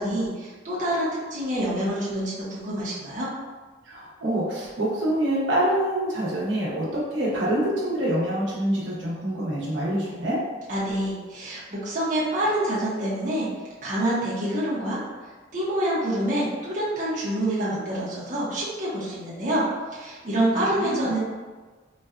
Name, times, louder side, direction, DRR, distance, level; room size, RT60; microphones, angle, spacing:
voice 1, 0.0-3.3 10.7-13.5 13.8-15.0 15.5-19.6 19.9-21.2, right 1 dB, 45° right, -8 dB, 0.7 m, -26 dB
voice 2, 3.8-10.4 20.5-21.0, right 1 dB, 85° right, -6 dB, 0.9 m, -26 dB
4.0 x 2.2 x 2.4 m, 1.3 s
head